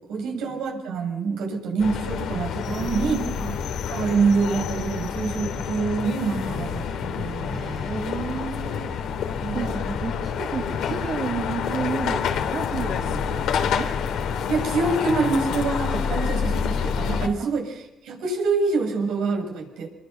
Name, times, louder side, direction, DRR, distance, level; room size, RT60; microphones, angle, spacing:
voice 1, 0.1-3.2 3.9-7.6 9.4-9.9 14.5-17.6 18.0-19.9, right 4 dB, 90° right, 1 dB, 7.4 m, -26 dB
sound 1, 1.8-17.3, left 7 dB, 80° left, 2.8 m, -28 dB
voice 2, 2.7-3.6 7.5-8.9 9.5-13.9 16.1-16.4 17.4-17.5, right 6 dB, 60° right, -1 dB, 3.8 m, -32 dB
26.5 x 22.5 x 7.0 m, 0.87 s
cardioid pair, 90°, 0 cm